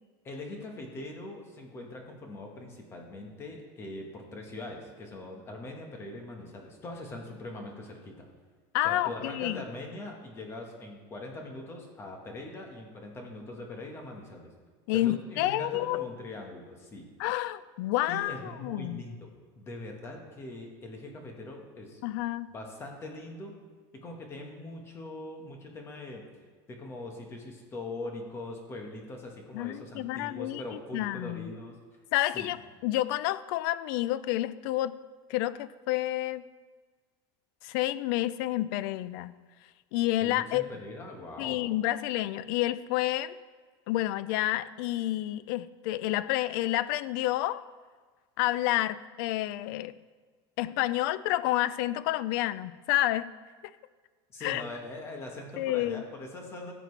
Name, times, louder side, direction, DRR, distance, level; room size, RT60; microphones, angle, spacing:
voice 1, 0.2-8.3 8.8-14.5 14.9-17.0 18.1-19.3 19.5-22.0 22.5-23.5 24.0-26.2 26.7-31.7 32.3-32.5 40.2-41.6 54.3-56.7, left 2 dB, 20° left, 2 dB, 1.3 m, -42 dB
voice 2, 8.7-9.6 14.9-16.1 17.2-19.0 22.0-22.5 29.5-30.6 30.9-31.5 32.1-35.0 35.3-36.4 37.6-39.3 39.9-40.6 41.4-43.4 43.9-47.6 48.4-49.9 50.6-53.3 54.4-54.6 55.6-56.0, left 15 dB, 55° left, 16 dB, 0.4 m, -29 dB
15.5 x 7.7 x 3.3 m, 1.5 s
cardioid pair, 175°, 13 cm